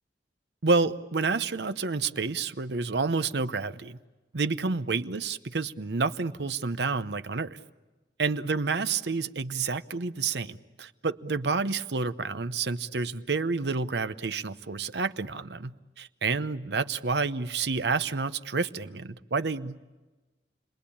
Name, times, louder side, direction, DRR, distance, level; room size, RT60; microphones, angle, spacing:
voice 1, 0.6-4.0 4.3-7.6 8.2-19.8, right 4 dB, 70° right, 12 dB, 0.9 m, -29 dB
29.5 x 21.5 x 8.6 m, 1.2 s
head